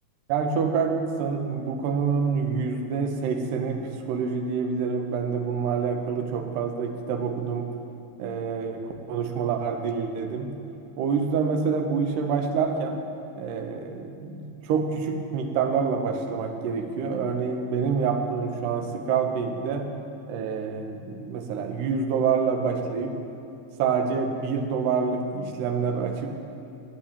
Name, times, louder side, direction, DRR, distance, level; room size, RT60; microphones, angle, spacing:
voice 1, 0.3-7.7 8.2-10.5 11.0-13.0 13.4-19.9 20.3-23.2 23.8-26.3, right 5 dB, 45° right, 4 dB, 1.5 m, -27 dB
11.0 x 8.3 x 9.2 m, 2.6 s
figure-of-eight pair, 90°, 0 cm